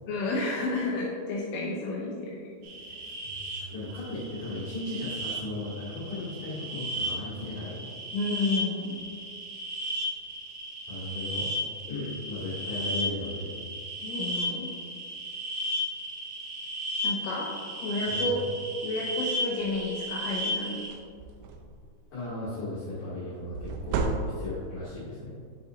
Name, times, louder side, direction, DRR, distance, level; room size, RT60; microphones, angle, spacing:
voice 1, 0.1-2.5 8.1-9.0 14.0-14.7 17.0-17.5 17.8-18.4 18.8-20.8, left 2 dB, 80° left, -5 dB, 3.2 m, -31 dB
sound 1, 2.6-20.9, equal, 70° right, 3.4 m, -35 dB
voice 2, 3.2-7.9 10.9-11.5 11.9-13.5 18.1-18.4 22.1-24.1 24.4-25.4, left 2 dB, 60° left, -10 dB, 3.5 m, -36 dB
sound 2, 19.6-19.9 20.3-20.5 20.8-21.9 23.5-24.8, right 4 dB, 90° right, 2.5 m, -32 dB
9.5 x 7.0 x 2.6 m, 2.2 s
omnidirectional pair, 5.9 m